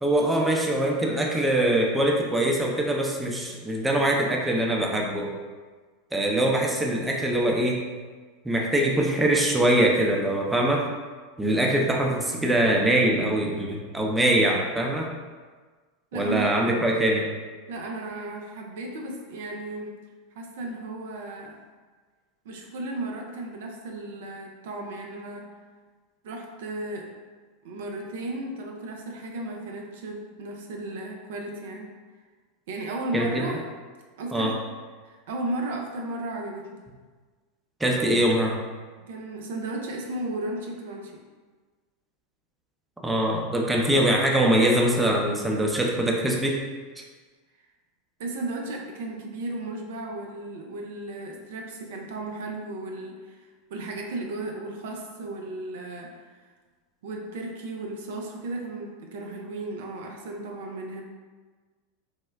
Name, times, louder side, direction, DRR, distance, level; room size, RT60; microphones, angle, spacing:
voice 1, 0.0-5.3 6.1-7.8 8.4-10.8 11.4-15.1 16.1-17.3 33.1-33.4 34.3-34.5 37.8-38.6 43.0-46.6 47.0-47.1, right 1 dB, 10° right, -1 dB, 0.5 m, -23 dB
voice 2, 16.1-16.5 17.7-20.0 20.3-21.6 22.4-25.5 26.2-27.1 27.6-32.0 32.7-33.6 34.2-34.6 35.0-36.8 39.1-41.2 48.2-56.3 57.0-61.0, right 2 dB, 70° right, 1 dB, 0.5 m, -35 dB
3.5 x 2.1 x 3.3 m, 1.4 s
hypercardioid pair, 95°, 0 cm